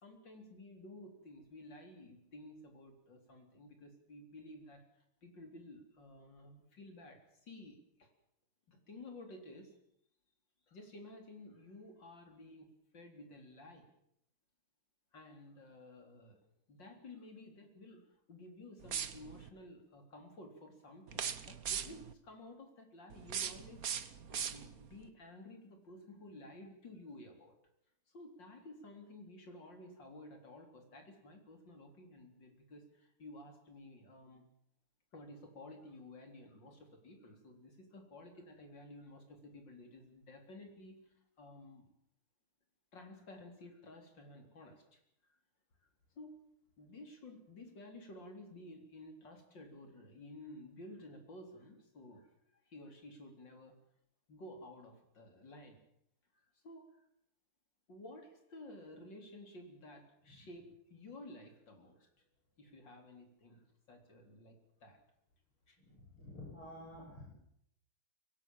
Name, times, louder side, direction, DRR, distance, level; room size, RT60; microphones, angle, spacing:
voice 1, 0.0-8.1 8.7-9.8 10.7-13.9 15.1-16.4 16.7-27.6 28.1-34.5 35.1-41.9 42.9-45.0 45.3-45.4 46.2-46.4 46.8-53.8 54.3-55.8 56.3-56.9 57.9-62.1 62.6-65.0 65.7-65.8, left 1 dB, 60° left, 4 dB, 4.5 m, -53 dB
sound 1, 18.8-19.5 21.1-22.1 23.1-25.0, right 8 dB, 50° right, 1.4 m, -40 dB
voice 2, 65.8-67.3, left 1 dB, 85° left, -3 dB, 8.6 m, -50 dB
23.5 x 18.0 x 7.4 m, 0.74 s
omnidirectional pair, 2.3 m